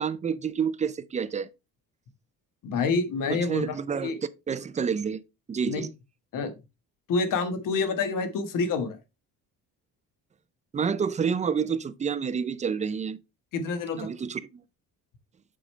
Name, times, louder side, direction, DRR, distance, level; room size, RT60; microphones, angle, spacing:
voice 1, 0.0-1.5 3.3-4.1 4.5-5.2 5.5-5.9 10.7-13.2 14.0-14.6, right 6 dB, 20° right, 0.4 m, -29 dB
voice 2, 2.6-3.8 4.0-4.2 5.7-5.9 6.3-6.5 7.1-9.0 13.5-14.1, left 4 dB, 65° left, 1.4 m, -27 dB
7.7 x 5.0 x 3.2 m
cardioid pair, 150°, 34 cm